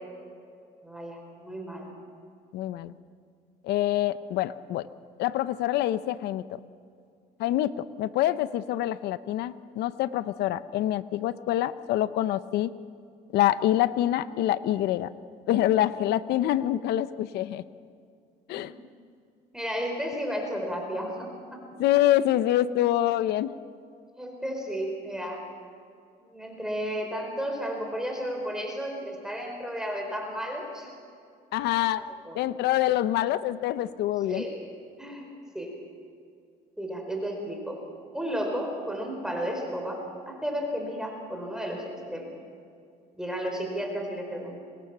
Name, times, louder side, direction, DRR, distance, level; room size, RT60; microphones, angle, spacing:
voice 1, 0.8-1.9 19.5-21.6 24.2-25.4 26.2-30.9 32.2-32.4 34.3-34.6 35.0-35.3 35.5-35.7 36.8-37.8 38.1-42.3 43.1-44.6, equal, 5° right, 2 dB, 4.5 m, -33 dB
voice 2, 2.5-2.9 3.6-4.9 5.2-6.6 7.4-7.7 8.0-12.7 13.3-15.1 15.5-17.6 18.5-18.7 21.8-23.5 31.5-32.0 32.4-34.4, left 13 dB, 80° left, 14 dB, 0.7 m, -26 dB
24.5 x 19.5 x 6.1 m, 2.4 s
cardioid pair, 110°, 17 cm